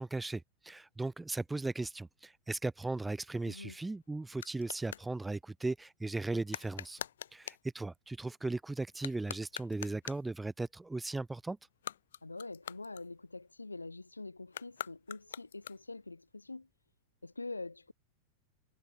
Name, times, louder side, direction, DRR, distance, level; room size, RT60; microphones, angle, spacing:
voice 1, 0.0-7.0 7.3-11.6, right 2 dB, 10° right, 0.7 m, -37 dB
voice 2, 3.5-3.8 12.2-16.7 17.2-17.9, left 3 dB, 80° left, 4.9 m, -45 dB
sound 1, 3.5-5.1 6.5-7.7 8.9-10.4 11.7-13.5 14.5-16.1, left 10 dB, 65° left, 6.6 m, -45 dB
figure-of-eight pair, 90°, 0 cm